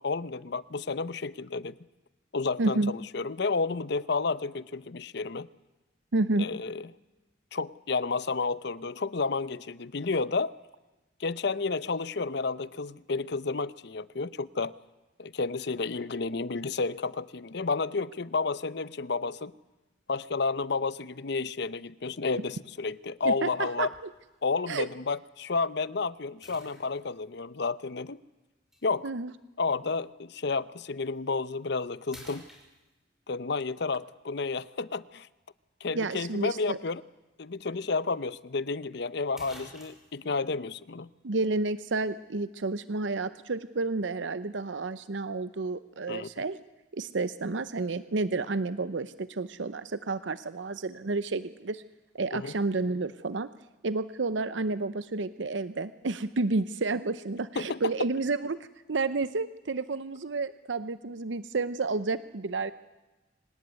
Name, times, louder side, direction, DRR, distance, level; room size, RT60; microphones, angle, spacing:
voice 1, 0.0-1.7 2.3-5.5 6.4-6.9 7.5-10.6 11.2-14.7 15.2-19.5 20.1-23.9 24.4-28.2 28.8-29.1 29.6-32.4 33.3-35.3 35.8-37.0 37.4-41.1 46.1-46.4 52.3-52.5 57.6-57.8, left 4 dB, 65° left, 0.8 m, -31 dB
voice 2, 2.6-2.9 6.1-6.5 23.2-23.9 24.7-24.9 29.0-29.3 35.9-36.8 41.2-46.6 46.9-51.8 52.1-53.5 53.8-58.6 58.9-62.7, right 3 dB, 80° right, 0.7 m, -30 dB
sound 1, 23.9-24.2 24.9-25.0 26.4-27.2 28.7-28.8 31.0-31.2 31.6-31.8 32.1-33.2 37.3-37.4 37.7-37.8 38.9-39.0 39.4-40.2, equal, ahead, 6.2 m, -50 dB
25.0 x 19.0 x 9.6 m
head